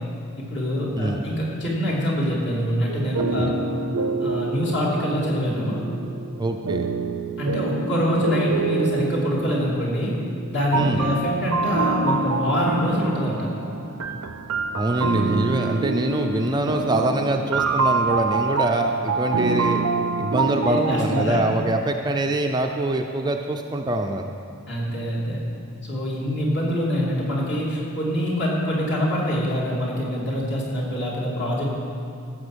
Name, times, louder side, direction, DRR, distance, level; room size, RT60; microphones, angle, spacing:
voice 1, 0.4-3.5 4.2-5.8 7.4-10.1 10.5-13.5 20.7-21.4 24.7-25.4 25.8-31.7, equal, 50° left, -5 dB, 3.0 m, -25 dB
sound 1, 2.9-21.2, right 4 dB, 80° right, 0.6 m, -26 dB
voice 2, 6.4-6.9 10.7-11.1 14.7-19.8 20.2-24.2, right 2 dB, 20° right, 3 dB, 0.5 m, -24 dB
15.0 x 7.5 x 6.3 m, 2.5 s
head